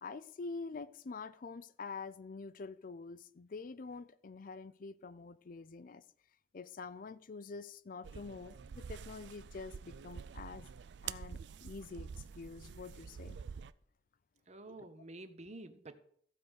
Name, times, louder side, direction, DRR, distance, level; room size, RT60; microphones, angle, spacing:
voice 1, 0.0-6.0 6.5-10.7 11.0-12.1 12.4-13.4 14.8-14.9, left 4 dB, 50° left, 0.5 m, -46 dB
sound 1, 8.0-13.7, right 7 dB, 75° right, 0.4 m, -47 dB
voice 2, 14.5-16.0, right 2 dB, 40° right, 0.9 m, -49 dB
14.5 x 5.0 x 6.3 m
head